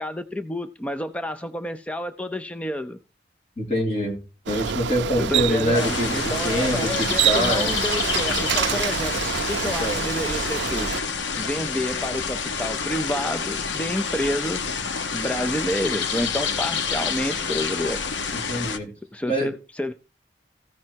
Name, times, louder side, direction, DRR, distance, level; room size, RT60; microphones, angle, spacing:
voice 1, 0.0-3.0 5.2-9.2 9.5-10.9 11.4-18.0 19.1-19.9, left 1 dB, 5° left, 0.4 m, -29 dB
voice 2, 3.6-4.2 4.5-6.1 6.4-7.7 9.8-10.0 18.3-18.9 19.3-19.5, equal, 35° left, 3.2 m, -25 dB
Bicycle, 4.5-11.0, right 8 dB, 80° right, 0.5 m, -27 dB
sound 1, 5.7-18.8, left 6 dB, 90° left, 0.9 m, -28 dB
15.5 x 5.3 x 4.5 m
head